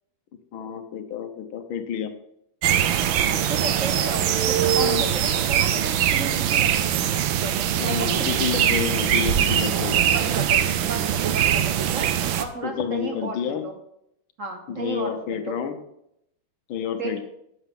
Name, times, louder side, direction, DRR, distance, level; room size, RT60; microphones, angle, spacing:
voice 1, 0.5-2.1 4.8-5.1 7.8-10.0 12.6-13.6 14.7-15.7 16.7-17.2, left 8 dB, 80° left, 8 dB, 1.7 m, -29 dB
sound 1, 2.6-12.4, right 10 dB, 75° right, 1.4 m, -22 dB
voice 2, 3.5-8.3 10.1-12.1 12.4-13.7 14.4-15.6 17.0-17.2, right 3 dB, 50° right, 4 dB, 1.1 m, -34 dB
11.0 x 7.1 x 3.7 m, 0.77 s
omnidirectional pair, 2.2 m